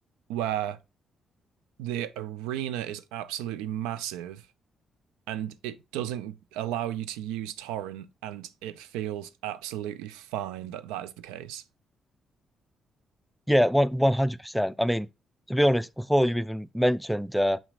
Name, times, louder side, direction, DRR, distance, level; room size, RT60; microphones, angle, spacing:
voice 1, 0.3-0.8 1.8-4.4 5.3-11.6, right 12 dB, 80° right, 0.4 m, -34 dB
voice 2, 13.5-15.1 15.5-17.6, equal, ahead, 0.5 m, -24 dB
6.9 x 5.7 x 2.4 m
hypercardioid pair, 40°, 0 cm